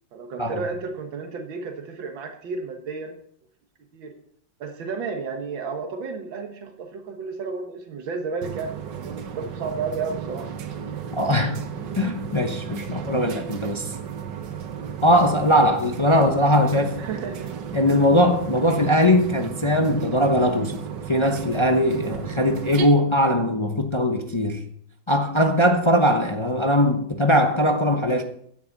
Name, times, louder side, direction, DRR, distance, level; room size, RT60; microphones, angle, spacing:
voice 1, 0.1-3.2 3.9-4.1 4.6-10.5 17.0-17.5, right 4 dB, 90° right, 2.0 m, -32 dB
sound 1, 8.4-22.9, right 8 dB, 70° right, 1.6 m, -34 dB
voice 2, 11.2-11.6 12.0-13.9 15.0-17.0 17.7-20.8 21.1-24.6 25.1-28.2, equal, 30° left, 0.5 m, -20 dB
16.0 x 9.7 x 4.0 m
omnidirectional pair, 2.0 m